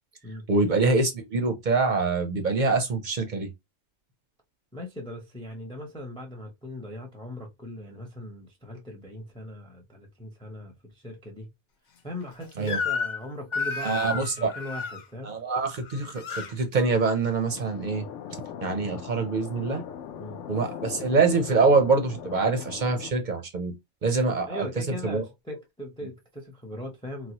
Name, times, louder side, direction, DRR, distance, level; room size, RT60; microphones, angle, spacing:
voice 1, 0.5-3.5 12.6-12.8 13.8-14.5 15.2-18.1 18.6-19.9 20.5-23.7 24.0-25.2, right 3 dB, 50° right, 0.6 m, -25 dB
voice 2, 4.7-11.5 12.0-15.3 20.2-20.4 24.4-27.3, left 1 dB, 5° left, 0.5 m, -39 dB
Crying sobbing / Screech, 12.7-13.2 13.5-15.0 15.8-16.5, left 5 dB, 55° left, 0.5 m, -31 dB
sound 1, 17.5-23.1, left 9 dB, 75° left, 0.9 m, -40 dB
4.0 x 2.1 x 2.8 m
omnidirectional pair, 1.3 m